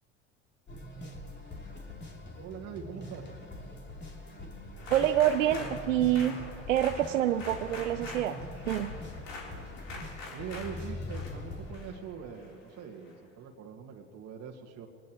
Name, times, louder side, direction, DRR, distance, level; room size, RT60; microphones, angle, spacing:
sound 1, 0.7-11.7, left 1 dB, 30° left, 3.2 m, -43 dB
voice 1, 2.4-3.3 9.2-14.9, right 7 dB, 45° right, -1 dB, 1.9 m, -43 dB
sound 2, 4.8-13.1, left 2 dB, 80° left, 4.0 m, -45 dB
voice 2, 4.9-6.4 6.7-8.3 8.7-8.9, right 11 dB, 80° right, 7 dB, 0.7 m, -26 dB
23.5 x 19.5 x 3.1 m, 2.3 s
hypercardioid pair, 70°, 38 cm